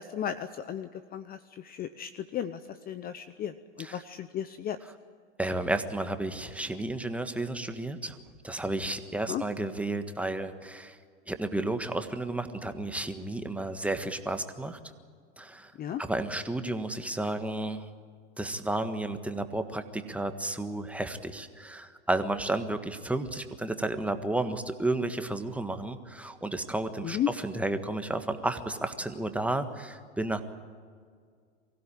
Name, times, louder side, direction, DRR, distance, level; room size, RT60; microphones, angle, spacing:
voice 1, 0.0-4.8 9.3-9.4 15.8-16.0 27.0-27.3, left 10 dB, 25° left, 13 dB, 0.8 m, -35 dB
voice 2, 5.4-8.2 8.4-11.0 11.3-14.8 15.4-15.7 16.0-17.9 18.4-30.4, right 2 dB, 5° right, 8 dB, 1.5 m, -32 dB
24.0 x 16.0 x 10.0 m, 2.1 s
hypercardioid pair, 105°, 35 cm